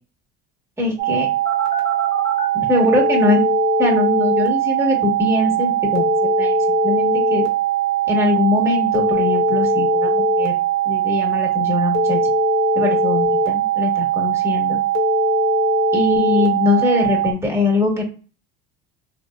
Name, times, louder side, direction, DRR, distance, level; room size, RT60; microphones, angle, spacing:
voice 1, 0.8-1.3 2.5-3.4 3.8-6.6 6.8-7.4 8.1-10.5 10.8-12.2 12.7-14.8 15.9-18.0, left 3 dB, 10° right, -1 dB, 1.2 m, -21 dB
sound 1, 1.0-17.3, right 14 dB, 75° right, 0.5 m, -21 dB
Telephone, 1.5-2.5 3.0-4.5 6.0-7.5 8.9-10.5 11.9-13.5 15.0-16.5, left 7 dB, 65° left, 1.0 m, -22 dB
2.9 x 2.0 x 2.3 m, 0.37 s
supercardioid pair, 90°, 29 cm